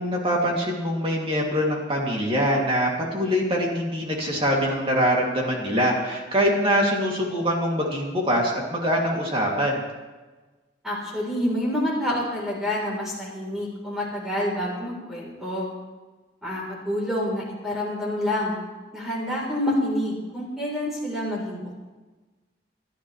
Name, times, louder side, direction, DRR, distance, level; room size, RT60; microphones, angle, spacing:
voice 1, 0.0-9.8, equal, 30° right, -2 dB, 2.7 m, -24 dB
voice 2, 10.8-15.7 16.4-18.6 18.9-21.7, left 1 dB, ahead, -5 dB, 3.9 m, -28 dB
28.5 x 12.0 x 3.3 m, 1.3 s
head